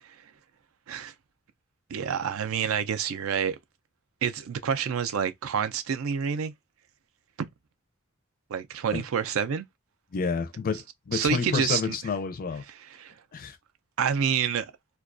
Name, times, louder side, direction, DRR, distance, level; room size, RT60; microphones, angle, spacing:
voice 1, 1.9-3.6 4.2-6.5 7.4-7.5 8.5-9.6 11.1-12.0 12.9-13.1 14.0-14.7, right 7 dB, 75° right, 0.4 m, -28 dB
voice 2, 10.1-12.6 13.3-13.6, left 5 dB, 40° left, 0.4 m, -29 dB
2.3 x 2.2 x 2.4 m
head